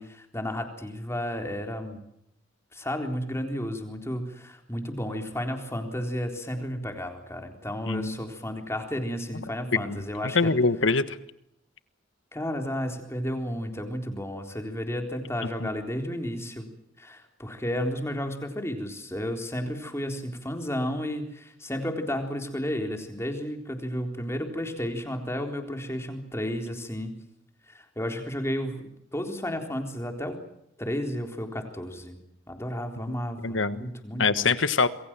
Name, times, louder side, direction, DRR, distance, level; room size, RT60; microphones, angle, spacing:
voice 1, 0.0-2.0 2.7-10.5 12.3-16.7 17.0-27.1 27.7-30.4 30.8-32.2 32.5-34.5, equal, 15° left, 5 dB, 3.9 m, -32 dB
voice 2, 10.3-11.2 15.6-15.7 33.4-33.9 34.2-34.9, left 4 dB, 80° left, 13 dB, 1.4 m, -24 dB
27.5 x 22.5 x 7.5 m, 0.77 s
head